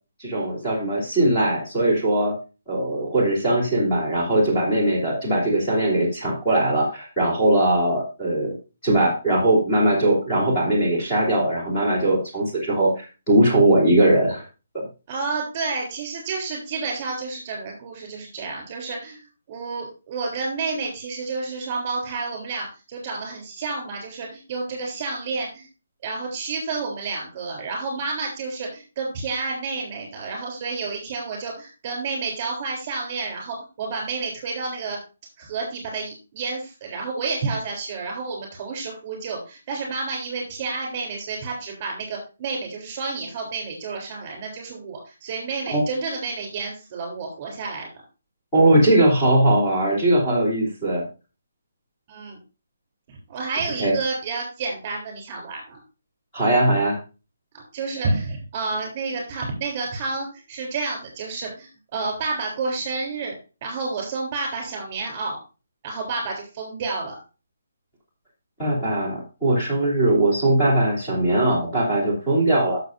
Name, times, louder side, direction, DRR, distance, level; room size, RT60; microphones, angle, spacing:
voice 1, 0.2-2.3 2.7-8.5 8.8-14.5 45.7-45.8 48.5-51.0 53.8-53.9 56.3-57.0 68.6-72.8, right 1 dB, 10° left, -7 dB, 3.2 m, -20 dB
voice 2, 15.1-19.2 19.5-25.7 26.0-35.0 35.4-47.9 52.1-52.4 53.1-55.8 57.5-63.3 63.6-65.4 65.8-67.2, right 4 dB, 25° right, 1 dB, 3.5 m, -30 dB
13.5 x 6.7 x 2.6 m, 0.31 s
hypercardioid pair, 175°, 0 cm